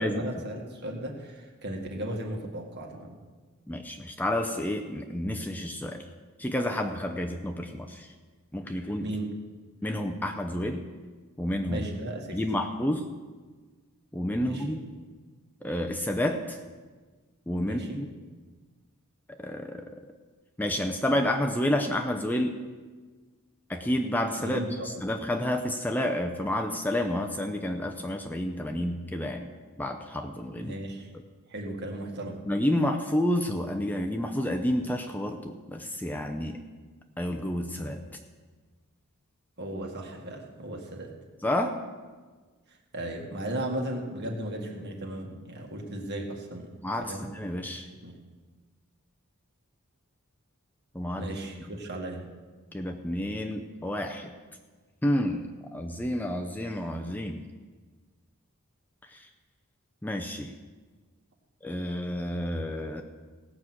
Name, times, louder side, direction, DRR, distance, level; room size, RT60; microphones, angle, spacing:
voice 1, 0.0-3.2 9.0-9.3 11.7-12.4 14.4-14.8 17.6-18.0 24.4-25.0 30.6-31.1 31.5-32.4 39.6-41.1 42.9-46.7 47.1-47.3 48.0-48.2 51.2-52.2, right 1 dB, 50° right, 1 dB, 1.9 m, -36 dB
voice 2, 3.7-6.1 6.4-8.1 8.5-9.1 9.8-10.9 11.4-11.8 12.3-13.1 14.1-14.8 15.6-16.6 17.5-18.0 19.3-20.0 20.6-22.6 23.7-29.5 29.8-30.7 32.5-36.6 37.2-38.0 41.4-41.7 46.8-47.9 50.9-51.3 52.7-54.3 55.0-57.4 59.0-59.3 60.0-60.5 61.6-63.0, left 1 dB, 10° left, 4 dB, 0.6 m, -30 dB
17.0 x 6.2 x 7.6 m, 1.4 s
head